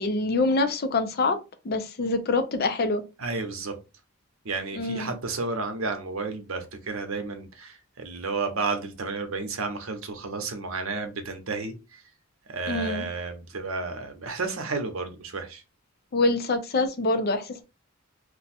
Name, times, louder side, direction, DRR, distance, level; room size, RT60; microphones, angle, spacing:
voice 1, 0.0-1.4 1.6-3.0 4.8-5.1 12.7-13.0 16.1-17.6, left 3 dB, 45° left, 0.5 m, -25 dB
voice 2, 3.2-3.8 4.4-12.0 12.5-15.6, right 3 dB, 75° right, 0.8 m, -32 dB
2.6 x 2.3 x 4.1 m
head